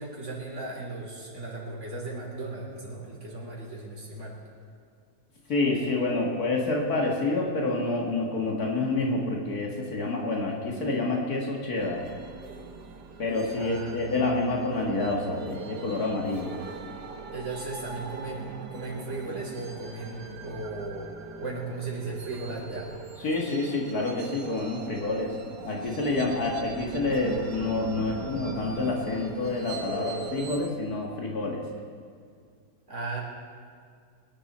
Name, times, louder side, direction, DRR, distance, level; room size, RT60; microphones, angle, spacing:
voice 1, 0.0-4.4 13.5-14.3 17.3-21.1 21.4-22.9 32.9-33.2, right 3 dB, 45° right, -4 dB, 3.8 m, -36 dB
voice 2, 5.5-12.1 13.2-16.5 23.2-25.3 25.7-31.6, left 2 dB, 65° left, -1 dB, 2.3 m, -28 dB
sound 1, 11.8-30.7, right 5 dB, 90° right, 1.6 m, -40 dB
23.0 x 11.5 x 4.2 m, 2.1 s
omnidirectional pair, 1.7 m